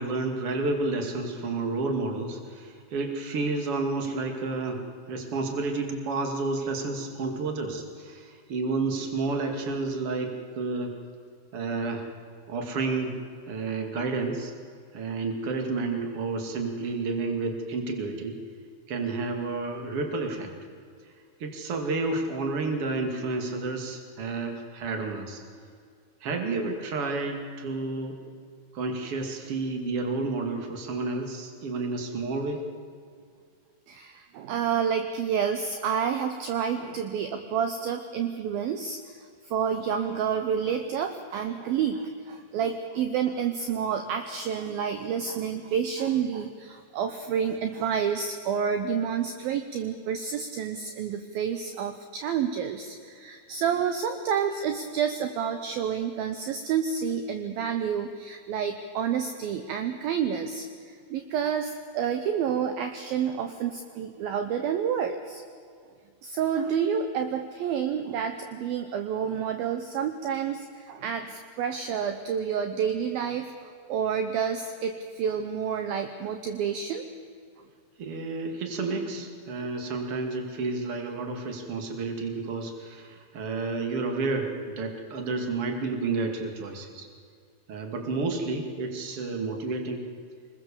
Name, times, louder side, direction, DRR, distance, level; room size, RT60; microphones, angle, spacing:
voice 1, 0.0-4.8 5.1-10.9 11.5-12.1 12.5-13.2 13.5-14.5 14.9-18.4 18.9-20.5 21.4-25.4 26.2-28.2 28.7-32.6 78.0-87.1 87.7-90.0, right 3 dB, 40° right, 4 dB, 2.7 m, -30 dB
voice 2, 33.9-65.4 66.2-77.1, right 7 dB, 70° right, 7 dB, 2.5 m, -29 dB
26.5 x 20.5 x 7.1 m, 2.2 s
omnidirectional pair, 4.9 m